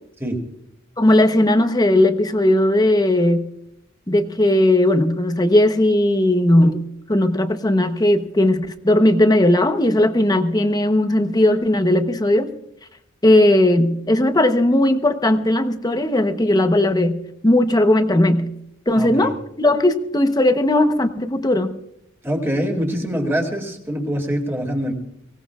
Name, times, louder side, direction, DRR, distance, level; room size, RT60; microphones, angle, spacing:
voice 1, 1.0-3.5 4.1-6.8 7.1-12.5 13.2-18.5 18.9-21.7, left 1 dB, 20° left, 8 dB, 0.9 m, -17 dB
voice 2, 18.9-19.3 22.2-24.9, equal, 10° right, 2 dB, 2.5 m, -24 dB
23.5 x 17.5 x 2.4 m, 0.78 s
head